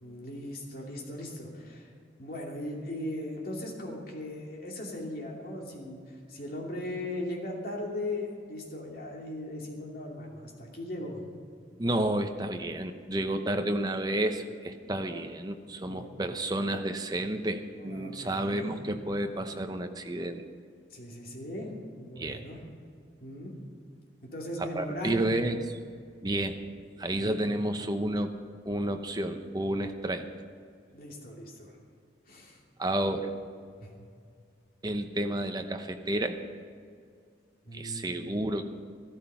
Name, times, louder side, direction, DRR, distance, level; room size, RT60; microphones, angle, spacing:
voice 1, 0.0-1.9 2.2-11.2 15.7-16.1 17.8-18.8 20.9-21.7 22.0-22.6 23.2-23.5 24.2-25.4 30.9-31.8 32.3-32.6 33.8-33.9 37.6-38.2, left 1 dB, 50° left, -1 dB, 2.7 m, -38 dB
voice 2, 11.8-20.4 22.2-22.4 24.6-25.8 26.2-26.6 27.0-28.3 28.7-30.2 32.8-33.3 34.8-36.4 37.7-38.7, right 1 dB, 20° right, 6 dB, 0.8 m, -31 dB
13.5 x 13.0 x 5.6 m, 2.2 s
head